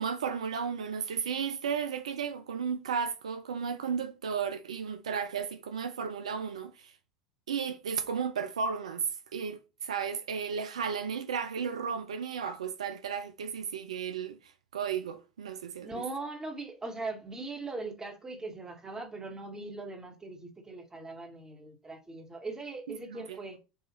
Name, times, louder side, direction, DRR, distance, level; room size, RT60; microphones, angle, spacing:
voice 1, 0.0-7.0 7.5-9.1 9.3-16.0 23.1-23.4, right 6 dB, 80° right, 0.3 m, -34 dB
voice 2, 15.8-23.6, right 3 dB, 20° right, 1.1 m, -40 dB
4.8 x 2.4 x 2.9 m
hypercardioid pair, 80°, 3 cm